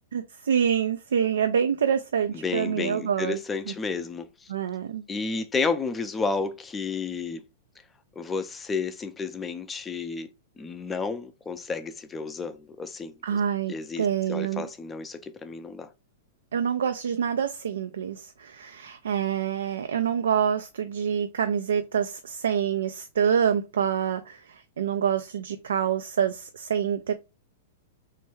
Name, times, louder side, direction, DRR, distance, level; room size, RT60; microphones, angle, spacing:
voice 1, 0.1-3.4 3.7-3.8 4.5-5.0 13.2-14.7 16.5-27.1, right 8 dB, 85° right, 0.3 m, -26 dB
voice 2, 2.3-4.5 5.1-7.4 8.2-10.3 10.6-13.4 13.7-15.9, left 4 dB, 15° left, 0.4 m, -31 dB
3.2 x 2.2 x 3.1 m
hypercardioid pair, 130°, 0 cm